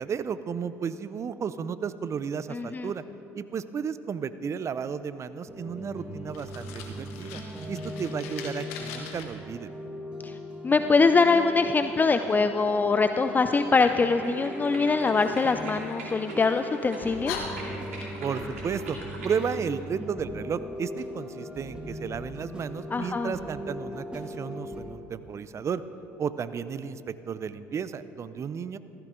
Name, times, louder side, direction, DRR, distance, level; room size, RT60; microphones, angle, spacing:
voice 1, 0.0-3.0 3.3-7.4 7.7-9.7 18.2-19.0 19.2-25.8 26.2-28.8, right 6 dB, 40° right, 14 dB, 0.6 m, -33 dB
voice 2, 2.5-2.9 10.2-10.4 10.6-17.5 22.9-23.3, left 4 dB, 25° left, 9 dB, 0.5 m, -23 dB
sound 1, 5.5-24.8, equal, 15° right, 2.5 m, -39 dB
Fire, 6.3-9.2 15.2-16.4 16.9-17.0 17.2-18.4, left 5 dB, 75° left, 1.4 m, -41 dB
sound 2, 13.4-19.6, right 2 dB, 90° right, 2.6 m, -43 dB
15.0 x 14.5 x 3.8 m, 3.0 s
hypercardioid pair, 65°, 8 cm